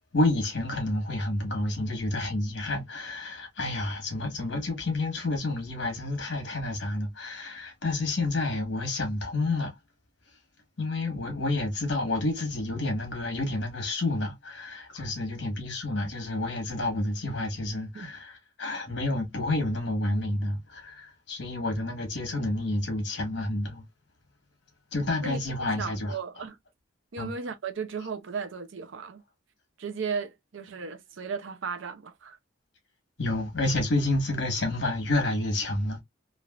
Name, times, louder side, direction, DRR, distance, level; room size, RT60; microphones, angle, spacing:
voice 1, 0.1-9.7 10.8-23.8 24.9-26.2 27.2-27.3 33.2-36.0, left 2 dB, 60° left, 1.2 m, -29 dB
voice 2, 25.8-26.6 27.1-29.2 29.8-32.4, right 5 dB, 75° right, 0.5 m, -35 dB
3.2 x 2.4 x 2.3 m
head